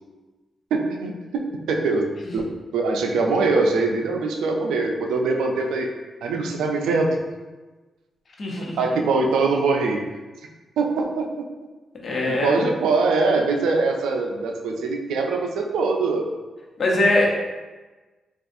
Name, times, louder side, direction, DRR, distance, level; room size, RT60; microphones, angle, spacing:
voice 1, 0.7-2.1 2.3-5.9 6.2-7.2 8.6-10.0 10.8-11.5 12.3-16.3, right 3 dB, 90° right, 2 dB, 0.4 m, -23 dB
voice 2, 8.4-8.7 12.0-12.6 16.8-17.3, left 2 dB, 55° left, -2 dB, 0.9 m, -21 dB
4.1 x 2.3 x 2.5 m, 1.2 s
cardioid pair, 60°, 0 cm